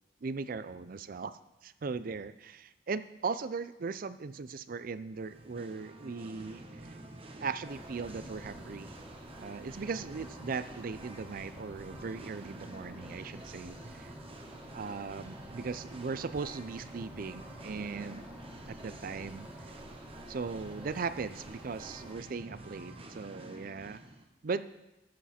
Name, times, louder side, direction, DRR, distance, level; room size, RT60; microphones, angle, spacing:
voice 1, 0.2-6.9 7.4-8.9 9.4-14.1 14.7-18.2 18.6-19.5 20.3-24.0 24.4-24.7, right 4 dB, 50° right, 14 dB, 0.4 m, -38 dB
Singing, 5.1-24.2, right 1 dB, 30° right, 0.9 m, -49 dB
sound 1, 7.7-22.2, equal, 10° right, 1.9 m, -51 dB
13.5 x 7.3 x 4.3 m, 0.98 s
head